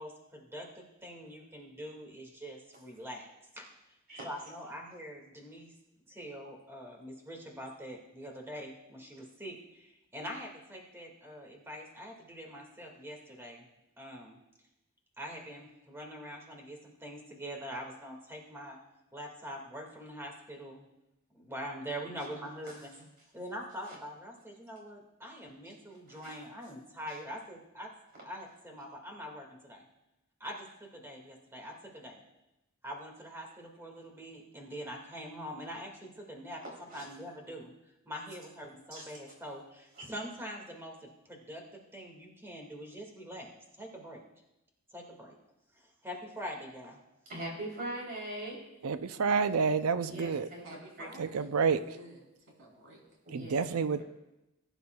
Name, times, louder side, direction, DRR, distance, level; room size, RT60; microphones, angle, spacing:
voice 1, 0.0-3.3 3.5-3.7 4.2-5.7 6.1-13.7 14.0-14.4 15.2-18.8 19.1-20.9 21.3-22.9 23.3-27.9 28.2-29.9 30.4-32.2 32.8-36.6 36.9-43.5 43.8-44.2 44.9-45.4 45.7-47.0, equal, 10° right, 2.0 m, -44 dB
voice 2, 47.3-48.6 50.1-51.1 53.3-53.6, right 1 dB, 45° right, 3.4 m, -41 dB
voice 3, 48.8-50.5 51.2-51.8 53.3-54.0, right 5 dB, 85° right, 0.5 m, -29 dB
voice 4, 50.6-53.0, right 1 dB, 65° right, 3.7 m, -51 dB
20.0 x 10.0 x 2.3 m
head